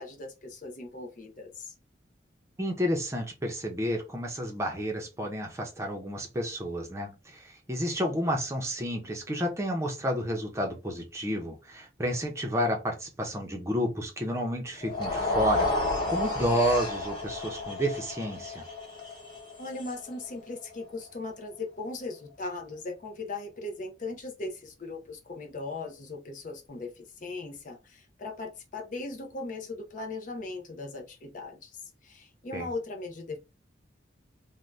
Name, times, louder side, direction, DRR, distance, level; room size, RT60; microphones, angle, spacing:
voice 1, 0.0-1.7 19.6-33.6, left 3 dB, 45° left, 0.5 m, -39 dB
voice 2, 2.6-15.7 16.1-18.6 32.5-32.7, equal, 15° right, 0.6 m, -30 dB
sound 1, 14.8-21.1, left 2 dB, 25° left, 1.0 m, -32 dB
2.6 x 2.2 x 3.2 m
head